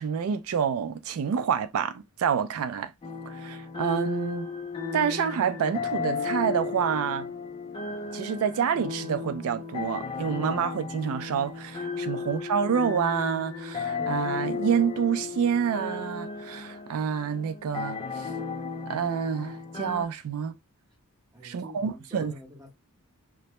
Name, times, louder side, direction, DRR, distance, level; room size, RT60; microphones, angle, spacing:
voice 1, 0.0-2.9 3.3-4.5 4.9-7.3 8.1-18.3 18.9-20.6 21.4-22.3, right 7 dB, 70° right, 0.3 m, -28 dB
sound 1, 3.0-20.1, left 5 dB, 25° left, 0.4 m, -34 dB
voice 2, 21.3-22.7, equal, 15° right, 0.8 m, -46 dB
2.1 x 2.0 x 2.8 m
head